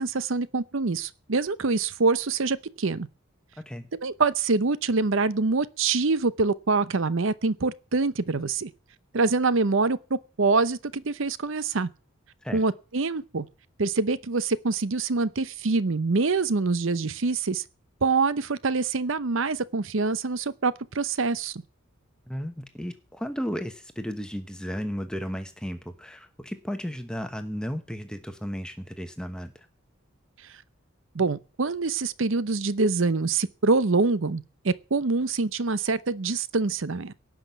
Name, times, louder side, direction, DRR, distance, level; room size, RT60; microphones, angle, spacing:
voice 1, 0.0-3.1 4.0-8.7 9.1-11.9 12.5-13.5 13.8-17.6 18.0-21.6 31.1-37.1, right 3 dB, 65° right, 0.7 m, -25 dB
voice 2, 22.3-29.7, equal, 5° left, 1.0 m, -34 dB
17.5 x 6.1 x 9.3 m
head